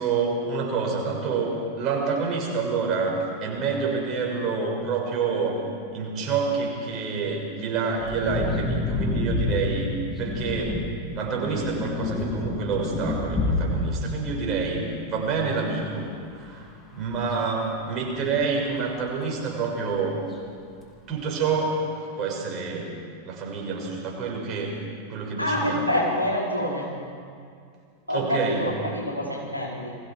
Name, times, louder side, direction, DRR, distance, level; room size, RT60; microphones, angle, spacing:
voice 1, 0.0-5.6 5.9-10.8 11.1-16.6 16.9-20.2 21.1-22.9 23.2-24.7 25.1-26.0 28.1-28.6, right 4 dB, 35° right, -1 dB, 6.5 m, -28 dB
sound 1, 8.0-14.9 15.3-15.4 17.0-18.0 19.2-19.3, left 2 dB, 15° left, 3.7 m, -29 dB
voice 2, 25.4-26.9 28.1-30.0, left 1 dB, 90° left, -4 dB, 5.2 m, -26 dB
30.0 x 21.5 x 4.8 m, 2.3 s
figure-of-eight pair, 90°, 0 cm